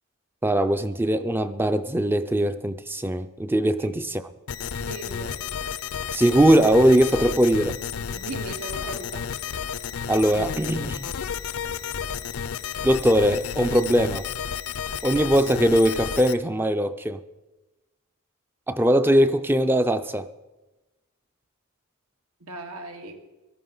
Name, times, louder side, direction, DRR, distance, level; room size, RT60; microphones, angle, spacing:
voice 1, 0.4-4.2 6.1-7.8 10.1-11.0 12.8-14.3 15.0-17.2 18.7-20.3, right 1 dB, 10° right, 0.4 m, -21 dB
sound 1, 4.5-16.3, left 7 dB, 75° left, 0.5 m, -32 dB
voice 2, 4.8-5.4 8.1-9.3 22.4-23.2, right 2 dB, 90° right, 1.8 m, -37 dB
17.5 x 13.0 x 3.9 m
head